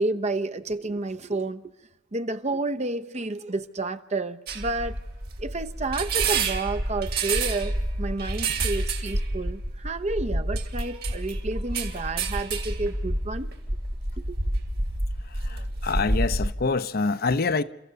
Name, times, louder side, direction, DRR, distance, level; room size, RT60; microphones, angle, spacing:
voice 1, 0.0-1.7 2.1-5.0 5.4-13.5 14.2-14.4, right 2 dB, 35° right, 0.9 m, -30 dB
sound 1, 4.5-16.5, right 2 dB, 55° right, 2.6 m, -28 dB
voice 2, 15.3-17.6, left 4 dB, 55° left, 0.7 m, -26 dB
29.0 x 14.5 x 6.8 m
head